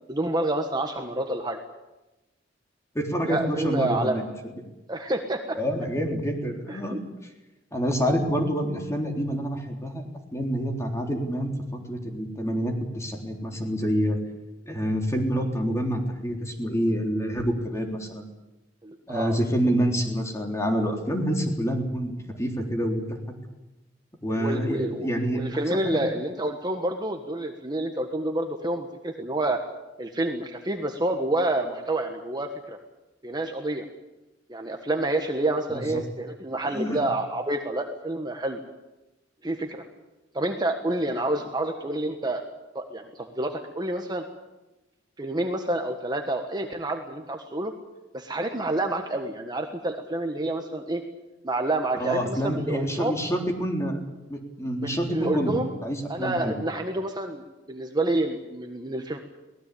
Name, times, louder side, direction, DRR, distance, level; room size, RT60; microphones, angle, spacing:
voice 1, 0.1-1.6 3.3-4.2 4.9-5.6 6.7-7.0 18.8-19.4 24.4-29.6 30.0-32.8 33.2-33.8 34.5-38.6 39.4-39.8 40.3-42.4 42.7-44.2 45.2-47.7 48.1-51.0 51.4-53.1 54.8-55.7 56.1-59.2, right 1 dB, 25° right, 4 dB, 1.4 m, -28 dB
voice 2, 3.0-4.3 5.6-7.0 7.7-14.2 14.7-18.3 19.1-22.1 22.4-23.0 24.2-25.5 25.8-26.0 35.7-36.0 36.6-37.0 52.0-54.0 54.3-56.6, equal, 15° left, 2 dB, 3.7 m, -27 dB
23.5 x 18.5 x 8.5 m, 1.0 s
head